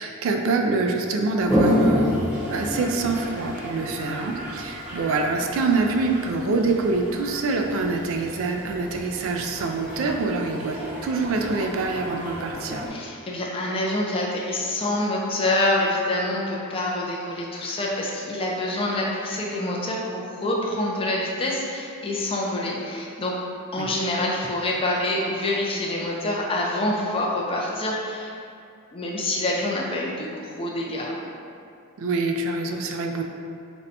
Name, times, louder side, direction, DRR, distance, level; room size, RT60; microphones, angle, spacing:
voice 1, 0.0-12.8 23.8-23.9 32.0-33.2, right 3 dB, 65° right, 3 dB, 0.3 m, -25 dB
Toilet flush, 1.4-12.9, left 1 dB, 5° right, 0.7 m, -29 dB
voice 2, 12.9-23.4 23.7-28.3 28.9-31.2, left 1 dB, 25° left, -3 dB, 0.4 m, -26 dB
2.6 x 2.2 x 4.0 m, 2.4 s
head